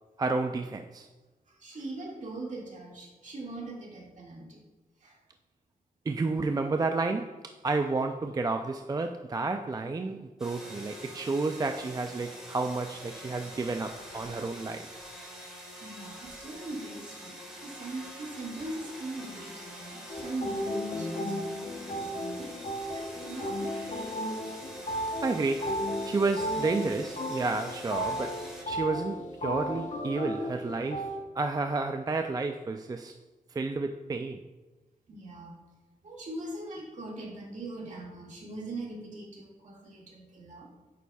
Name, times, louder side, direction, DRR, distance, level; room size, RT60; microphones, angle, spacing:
voice 1, 0.2-1.1 6.1-14.9 25.2-31.1 31.4-33.1 33.5-34.4, right 3 dB, 25° right, 0.4 m, -31 dB
voice 2, 1.5-4.6 5.0-5.2 15.8-22.5 22.9-23.9 24.2-24.3 35.1-35.5 36.0-40.7, right 2 dB, 60° right, 2.0 m, -41 dB
sound 1, 10.4-28.6, equal, 5° right, 2.2 m, -45 dB
sound 2, 20.1-31.2, equal, 60° left, 1.2 m, -35 dB
9.1 x 6.8 x 2.3 m
wide cardioid pair, 90°, 15 cm